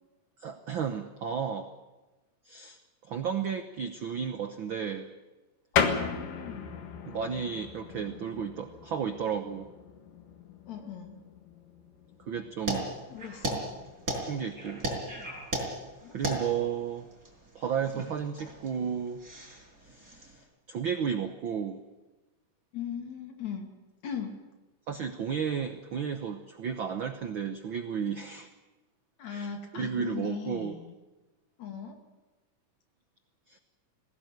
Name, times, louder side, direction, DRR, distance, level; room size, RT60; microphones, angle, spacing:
voice 1, 0.4-1.7 2.4-5.1 7.0-9.7 12.3-13.0 14.2-14.9 16.1-17.1 17.5-19.2 19.8-20.4 20.7-21.8 24.9-28.5 29.3-29.5 29.7-30.8 33.5-33.6, right 7 dB, 80° right, 8 dB, 1.1 m, -33 dB
sound 1, 5.7-15.9, left 6 dB, 80° left, 3.3 m, -37 dB
voice 2, 5.7-6.8 10.7-11.2 13.1-13.7 16.0-16.2 22.7-23.7 24.0-24.4 29.2-31.0 31.6-32.0, left 7 dB, 60° left, 4 dB, 3.6 m, -39 dB
sound 2, 12.7-20.4, right 1 dB, 25° right, 5.4 m, -36 dB
21.0 x 17.0 x 9.4 m, 1.1 s
omnidirectional pair, 3.8 m